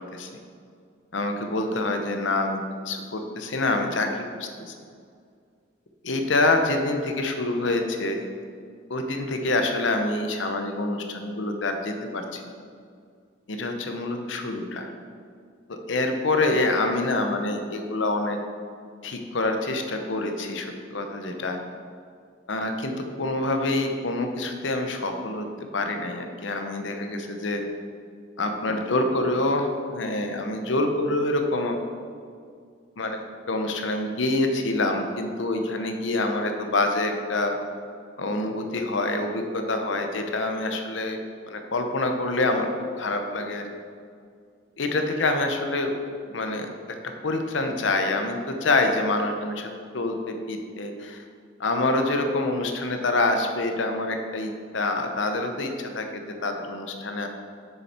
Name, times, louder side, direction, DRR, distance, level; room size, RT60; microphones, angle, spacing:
voice 1, 1.1-2.6 2.9-4.7 6.0-8.2 8.9-12.4 13.5-14.9 15.7-18.4 19.0-21.6 22.5-25.5 25.7-27.6 28.4-31.8 33.0-33.2 33.5-37.6 38.2-41.2 41.5-42.7 43.0-43.6 44.8-45.9 46.3-46.7 47.2-51.2 51.6-57.3, left 2 dB, 75° left, 5 dB, 0.8 m, -26 dB
6.9 x 6.8 x 4.4 m, 2.2 s
head